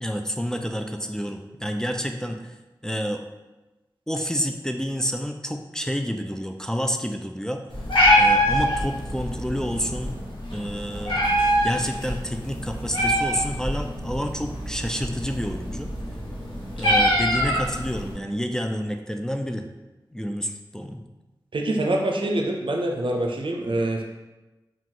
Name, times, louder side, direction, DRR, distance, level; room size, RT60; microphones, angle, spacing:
voice 1, 0.0-2.6 2.8-3.2 4.1-7.6 8.1-10.2 10.5-11.2 11.6-15.9 16.8-19.7 20.1-21.0, equal, 5° left, 4 dB, 0.4 m, -29 dB
Meow, 7.7-18.1, equal, 90° left, 1.2 m, -24 dB
voice 2, 21.5-24.0, right 1 dB, 80° right, 1 dB, 0.6 m, -25 dB
4.6 x 2.4 x 3.8 m, 1.1 s
wide cardioid pair, 45°, 9 cm